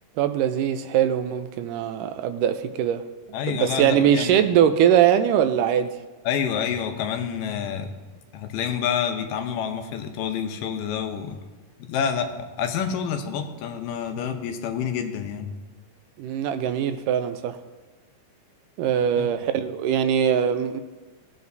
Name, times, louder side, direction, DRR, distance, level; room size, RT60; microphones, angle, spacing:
voice 1, 0.2-3.0 3.5-5.9 16.2-17.6 18.8-20.8, right 9 dB, 80° right, 10 dB, 2.1 m, -22 dB
voice 2, 3.3-4.4 6.3-7.9 8.3-11.4 11.9-15.5 19.2-19.3, left 7 dB, 80° left, 5 dB, 2.5 m, -28 dB
17.5 x 7.6 x 2.7 m, 1.2 s
omnidirectional pair, 3.8 m